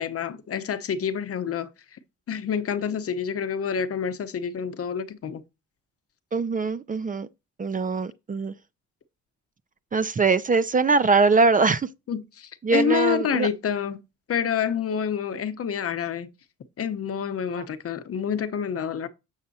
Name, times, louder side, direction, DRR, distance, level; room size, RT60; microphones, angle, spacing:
voice 1, 0.0-2.0 2.3-5.4 12.1-14.0 14.3-16.3 16.8-19.1, left 7 dB, 50° left, 0.9 m, -28 dB
voice 2, 6.3-7.3 7.6-8.5 9.9-11.9 12.6-13.5 17.6-17.7, right 4 dB, 25° right, 0.5 m, -22 dB
7.3 x 6.5 x 2.8 m
cardioid pair, 90°, 30 cm